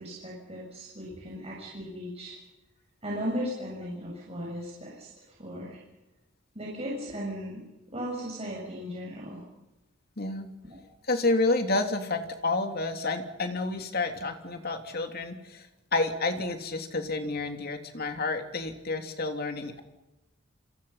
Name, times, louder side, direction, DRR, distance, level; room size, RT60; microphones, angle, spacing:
voice 1, 0.0-2.4 3.0-5.1 5.4-5.8 6.5-7.6 7.9-9.4 10.6-10.8, equal, 30° right, -4 dB, 7.1 m, -36 dB
voice 2, 10.2-10.5 11.1-19.8, left 2 dB, 50° left, 5 dB, 3.0 m, -30 dB
27.0 x 27.0 x 5.8 m, 1.0 s
head